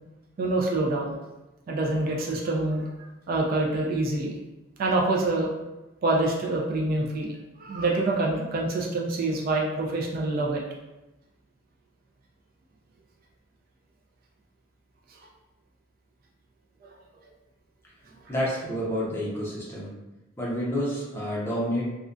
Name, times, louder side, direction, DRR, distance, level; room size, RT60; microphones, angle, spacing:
voice 1, 0.4-1.2 1.7-2.9 3.3-4.4 4.8-5.5 6.0-10.6 16.8-16.9, right 2 dB, 45° right, -1 dB, 0.3 m, -26 dB
voice 2, 18.3-19.9 20.4-21.9, equal, 10° left, -6 dB, 0.5 m, -29 dB
2.4 x 2.1 x 2.4 m, 1.0 s
head